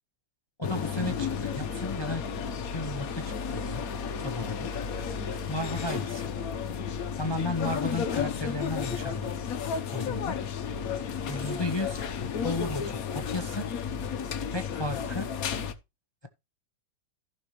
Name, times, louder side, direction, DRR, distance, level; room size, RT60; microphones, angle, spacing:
sound 1, 0.6-15.7, left 7 dB, 55° left, 1.3 m, -33 dB
voice 1, 0.6-2.3 2.6-3.9 4.2-4.7 5.5-6.2 7.2-9.3 9.9-10.4 11.3-12.1 12.4-13.8 14.5-15.3, left 2 dB, 35° left, 0.4 m, -34 dB
14.5 x 6.1 x 3.1 m
omnidirectional pair, 2.0 m